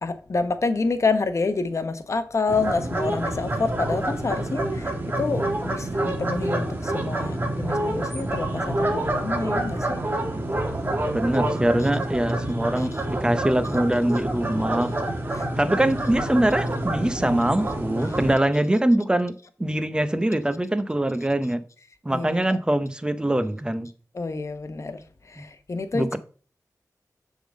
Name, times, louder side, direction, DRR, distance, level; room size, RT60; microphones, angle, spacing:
voice 1, 0.0-10.0 12.8-12.9 15.3-15.7 22.1-22.6 24.1-25.0 25.3-26.2, left 3 dB, 50° left, 0.9 m, -28 dB
sound 1, 2.5-18.3, right 1 dB, 30° right, 1.6 m, -27 dB
voice 2, 11.1-14.9 15.6-19.3 19.6-21.6 22.0-23.9 25.9-26.2, right 1 dB, 15° right, 0.7 m, -23 dB
7.0 x 3.8 x 6.2 m
wide cardioid pair, 70°, 6 cm